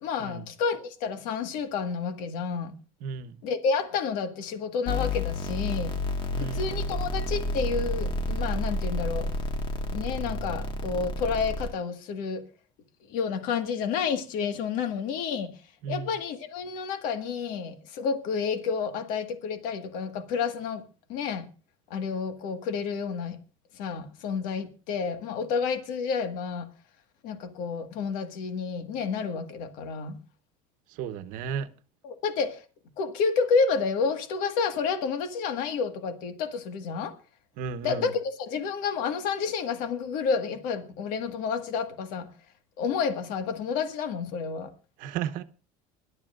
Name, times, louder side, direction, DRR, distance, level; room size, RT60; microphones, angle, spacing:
voice 1, 0.0-2.7 3.4-5.9 6.4-9.3 9.9-12.5 13.1-15.5 15.9-20.8 21.1-21.4 21.9-23.4 23.8-26.7 27.2-30.2 32.0-32.6 33.0-37.2 37.8-42.3 42.8-44.7, left 5 dB, 70° left, 1.7 m, -30 dB
voice 2, 3.0-3.4 6.3-6.7 15.8-16.2 30.9-31.7 37.6-38.1 45.0-45.4, right 7 dB, 65° right, 1.0 m, -34 dB
sound 1, 4.9-11.7, left 1 dB, 35° left, 1.7 m, -30 dB
24.5 x 12.0 x 2.5 m
cardioid pair, 135°, 15 cm